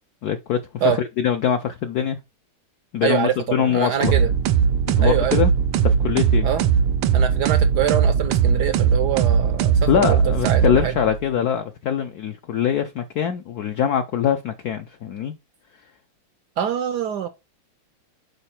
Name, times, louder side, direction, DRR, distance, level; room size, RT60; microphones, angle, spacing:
voice 1, 0.2-2.2 2.9-4.1 4.9-5.5 5.8-6.5 9.9-15.3, left 9 dB, 75° left, 0.8 m, -23 dB
voice 2, 3.0-4.3 5.0-5.4 6.4-6.6 7.1-10.2 10.4-10.9 16.6-17.3, right 9 dB, 75° right, 1.0 m, -24 dB
sound 1, 4.0-11.2, right 7 dB, 90° right, 1.6 m, -19 dB
6.6 x 4.8 x 4.3 m
omnidirectional pair, 2.4 m